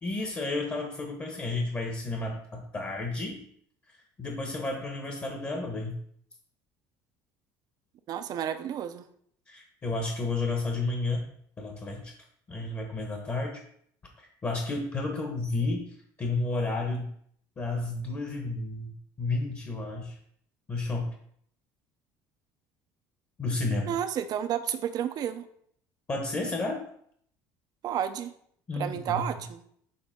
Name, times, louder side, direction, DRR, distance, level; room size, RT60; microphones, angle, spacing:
voice 1, 0.0-3.4 4.2-6.0 9.5-11.3 11.6-12.1 12.5-13.6 14.2-17.1 17.6-20.2 20.7-21.1 23.4-23.9 26.1-26.8 28.7-29.2, left 2 dB, 30° left, 1 dB, 1.3 m, -32 dB
voice 2, 8.1-9.0 23.9-25.4 27.8-28.3 28.7-29.6, right 9 dB, 50° right, 10 dB, 0.7 m, -31 dB
7.0 x 3.4 x 5.1 m, 0.65 s
cardioid pair, 115°, 9 cm